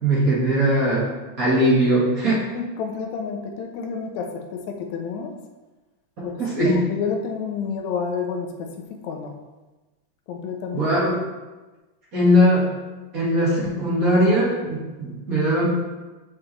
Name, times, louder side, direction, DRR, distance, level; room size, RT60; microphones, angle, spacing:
voice 1, 0.0-1.1 1.4-2.4 6.4-6.8 10.7-11.1 12.1-12.7 13.1-15.7, equal, 35° right, -7 dB, 2.0 m, -19 dB
voice 2, 2.5-5.3 6.2-6.3 6.7-9.3 10.3-10.9, left 6 dB, 75° left, 3 dB, 2.0 m, -29 dB
7.1 x 6.9 x 3.3 m, 1.2 s
omnidirectional pair, 3.5 m